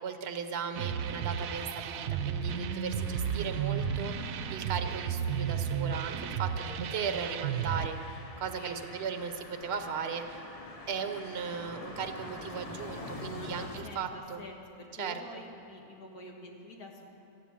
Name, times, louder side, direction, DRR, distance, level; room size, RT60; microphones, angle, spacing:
voice 1, 0.0-8.0 8.4-10.4 10.9-14.4 15.0-15.4, right 6 dB, 50° right, 7 dB, 1.0 m, -37 dB
sound 1, 0.7-7.9, right 7 dB, 70° right, 1.0 m, -33 dB
sound 2, 2.2-13.8, left 2 dB, 25° left, 1.0 m, -47 dB
voice 2, 8.5-8.8 13.3-17.0, left 1 dB, 80° left, 1 dB, 2.1 m, -47 dB
13.0 x 11.0 x 8.7 m, 2.8 s
omnidirectional pair, 1.6 m